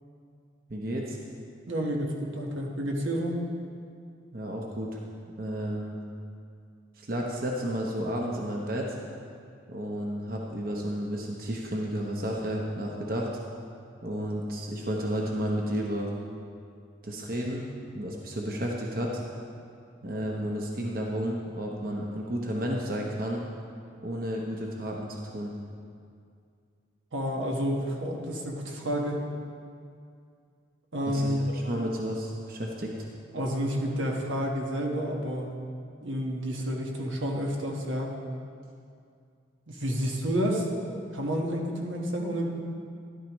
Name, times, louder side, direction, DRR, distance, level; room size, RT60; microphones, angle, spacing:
voice 1, 0.7-1.2 4.3-5.0 5.4-6.0 7.0-9.0 9.7-13.3 14.0-16.1 17.0-17.7 17.9-19.2 20.0-23.4 24.0-25.5 31.1-32.9, equal, 50° right, -1 dB, 0.9 m, -32 dB
voice 2, 1.7-3.4 27.1-29.2 30.9-31.5 33.3-35.6 36.0-38.1 39.7-42.5, equal, 85° right, 0 dB, 1.4 m, -30 dB
13.0 x 11.5 x 3.1 m, 2.3 s
head